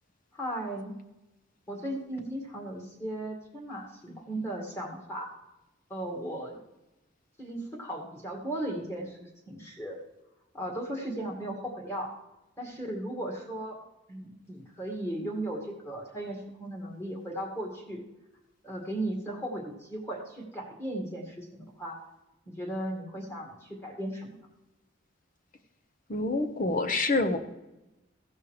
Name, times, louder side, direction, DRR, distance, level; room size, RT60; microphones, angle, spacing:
voice 1, 0.3-0.9 1.7-5.3 5.9-6.6 7.4-10.0 10.5-12.1 12.6-13.8 14.1-18.0 18.6-22.0 22.5-24.3, right 1 dB, 15° left, -1 dB, 2.2 m, -36 dB
voice 2, 26.1-27.4, left 2 dB, 40° left, 7 dB, 0.9 m, -27 dB
16.0 x 5.5 x 4.8 m, 0.95 s
head